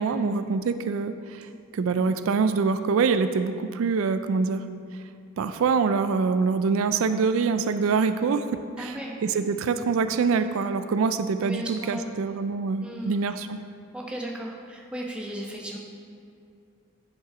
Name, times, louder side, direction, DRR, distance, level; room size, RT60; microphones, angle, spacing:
voice 1, 0.0-4.6 5.4-8.5 8.8-9.0 9.2-13.6, right 5 dB, 75° right, 10 dB, 0.3 m, -25 dB
voice 2, 8.8-9.2 11.4-12.1 12.8-13.2 13.9-15.8, right 1 dB, 5° right, -2 dB, 0.9 m, -35 dB
9.1 x 5.4 x 4.9 m, 2.4 s
head